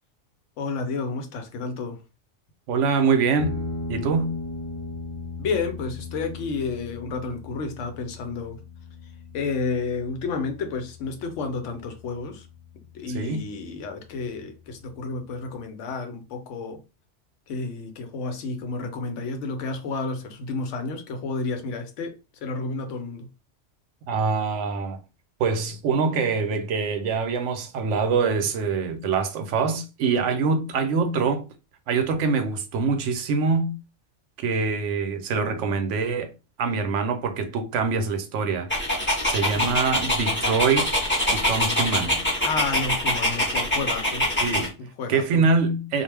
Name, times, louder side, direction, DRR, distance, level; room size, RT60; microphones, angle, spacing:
voice 1, 0.6-2.0 5.4-8.6 9.3-12.5 12.9-16.8 17.5-23.3 30.7-30.9 39.5-39.8 42.4-44.3 44.8-45.4, left 4 dB, 80° left, 1.0 m, -31 dB
voice 2, 2.7-3.5 3.9-4.3 13.1-13.4 24.1-25.0 25.4-31.4 31.9-33.7 34.4-36.3 36.6-38.7 39.2-41.1 41.3-42.2 44.4-44.7 45.1-46.0, right 5 dB, 80° right, 0.9 m, -24 dB
sound 1, 3.4-12.4, left 2 dB, 50° right, 0.7 m, -37 dB
Dog, 38.7-44.7, left 1 dB, 10° left, 0.8 m, -24 dB
2.4 x 2.1 x 3.2 m
omnidirectional pair, 1.2 m